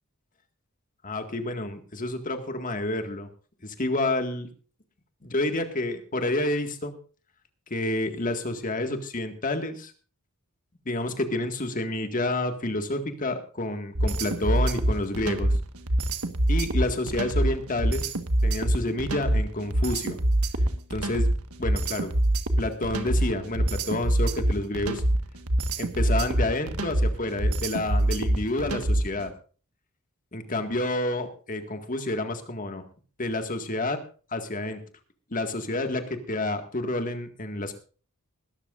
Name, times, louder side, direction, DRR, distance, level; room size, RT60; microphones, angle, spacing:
voice 1, 1.0-3.3 3.6-4.5 5.2-6.9 7.7-9.9 10.9-15.6 16.5-18.1 18.4-20.2 20.9-21.3 21.6-22.1 22.6-25.0 25.8-29.3 30.3-32.8 33.2-34.0 34.3-34.8 35.3-37.7, left 2 dB, 40° left, 7 dB, 1.9 m, -29 dB
sound 1, 13.9-29.2, right 1 dB, 80° right, 1.5 m, -24 dB
21.0 x 13.0 x 2.5 m, 0.38 s
head